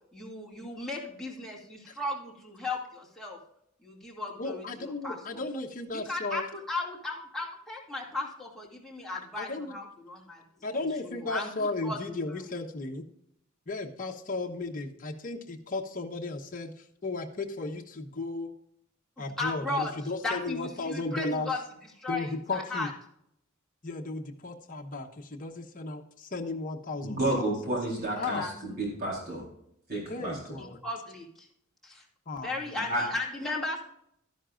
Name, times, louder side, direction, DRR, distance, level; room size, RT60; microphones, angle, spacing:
voice 1, 0.1-3.4 3.8-5.4 5.9-10.4 11.0-11.5 11.8-12.0 12.3-12.5 19.2-19.9 20.2-21.6 22.0-22.9 28.2-28.5 30.6-31.5 31.8-32.1 32.4-33.8, left 2 dB, ahead, -3 dB, 2.5 m, -36 dB
voice 2, 4.4-6.4 9.1-9.8 10.6-13.0 13.7-18.5 19.2-21.5 22.1-22.9 23.8-27.5 28.2-28.5 30.1-30.8 32.3-33.0, left 3 dB, 40° left, 2 dB, 1.0 m, -35 dB
voice 3, 27.0-28.4 28.8-29.4 29.9-30.3 32.9-33.0, right 1 dB, 50° right, -2 dB, 3.8 m, -30 dB
12.5 x 10.5 x 2.5 m, 0.73 s
head